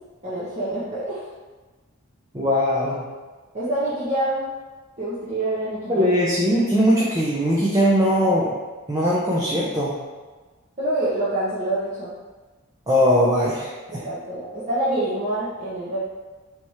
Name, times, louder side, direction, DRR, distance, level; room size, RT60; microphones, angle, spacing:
voice 1, 0.2-1.3 3.5-4.4 5.0-6.1 10.8-12.1 13.9-16.0, right 1 dB, 30° right, -11 dB, 0.9 m, -26 dB
voice 2, 2.3-3.1 5.9-8.5 8.9-10.0 12.9-14.0, equal, 15° right, -6 dB, 0.5 m, -20 dB
3.4 x 3.1 x 4.2 m, 1.3 s
head